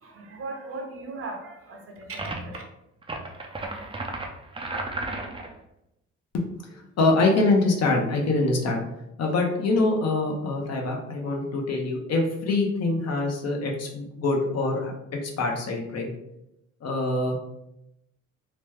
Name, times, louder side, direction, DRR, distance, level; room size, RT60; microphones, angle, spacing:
voice 1, 0.0-2.6, right 2 dB, 50° right, 1 dB, 0.8 m, -38 dB
sound 1, 2.2-2.6 3.0-5.5, right 2 dB, 20° right, 0.4 m, -33 dB
voice 2, 6.7-8.8 9.2-14.9 15.2-16.1 16.8-17.4, left 2 dB, 55° left, 1 dB, 0.8 m, -24 dB
3.0 x 2.2 x 3.3 m, 0.84 s
cardioid pair, 90°, 30 cm